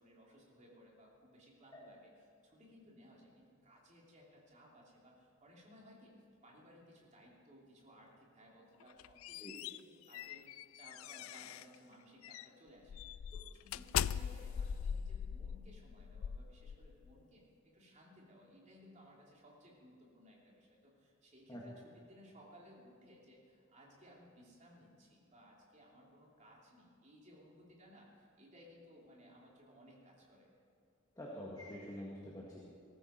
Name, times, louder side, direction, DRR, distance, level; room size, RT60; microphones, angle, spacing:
voice 1, 0.0-6.1 6.4-30.5, equal, 35° right, -3 dB, 3.1 m, -60 dB
sound 1, 8.8-11.8 12.2-12.5 12.9-17.1, left 8 dB, 75° left, 0.3 m, -41 dB
voice 2, 31.2-32.6, equal, 20° left, -5 dB, 1.9 m, -46 dB
18.5 x 14.0 x 4.5 m, 2.3 s
head